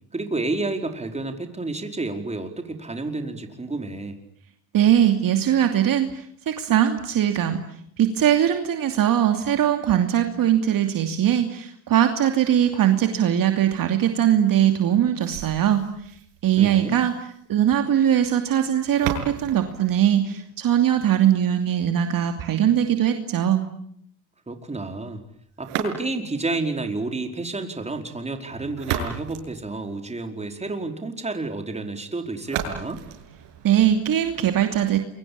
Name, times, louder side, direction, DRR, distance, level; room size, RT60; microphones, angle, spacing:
voice 1, 0.1-4.2 16.6-17.0 24.5-25.2 25.6-33.0, right 3 dB, 15° right, 5 dB, 4.9 m, -30 dB
voice 2, 4.7-7.6 8.0-15.9 16.4-17.1 17.5-23.6 33.6-35.0, right 10 dB, 45° right, 6 dB, 2.8 m, -21 dB
sound 1, 15.2-21.2 25.6-26.4 28.5-30.4 32.4-34.4, right 8 dB, 65° right, 7.3 m, -35 dB
28.5 x 24.0 x 8.7 m, 0.69 s
supercardioid pair, 95°, 46 cm